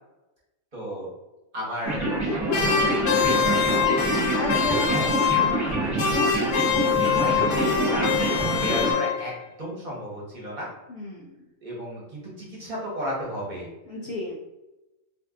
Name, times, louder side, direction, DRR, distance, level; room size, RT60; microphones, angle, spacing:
voice 1, 0.7-1.1 1.5-2.2 2.5-4.1 4.9-5.1 5.6-9.3 9.6-10.7 11.6-13.7, equal, 35° right, -4 dB, 1.0 m, -34 dB
sound 1, 1.8-8.9, right 2 dB, 15° right, 0.7 m, -26 dB
sound 2, 2.5-5.7 6.0-9.4, left 7 dB, 90° left, 1.2 m, -24 dB
voice 2, 4.3-5.2 10.9-11.4 13.9-14.4, left 3 dB, 70° left, -3 dB, 0.6 m, -33 dB
2.6 x 2.5 x 3.6 m, 1.0 s
omnidirectional pair, 1.6 m